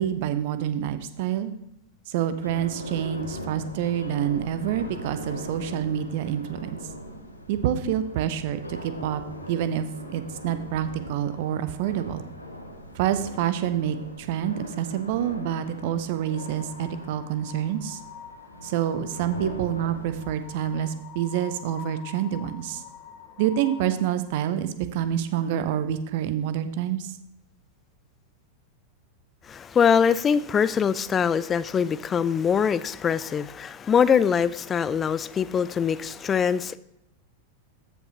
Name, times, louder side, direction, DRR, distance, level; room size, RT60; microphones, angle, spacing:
voice 1, 0.0-1.5 2.1-6.8 7.5-12.2 12.9-18.0 18.6-22.8 23.4-27.2, right 10 dB, 50° right, 0.6 m, -27 dB
sound 1, 2.4-20.9, equal, 90° left, 0.8 m, -40 dB
sound 2, 16.2-24.2, left 8 dB, 40° left, 1.2 m, -46 dB
voice 2, 29.5-36.8, left 7 dB, 20° left, 0.3 m, -23 dB
14.0 x 5.3 x 2.9 m
figure-of-eight pair, 90°, 0 cm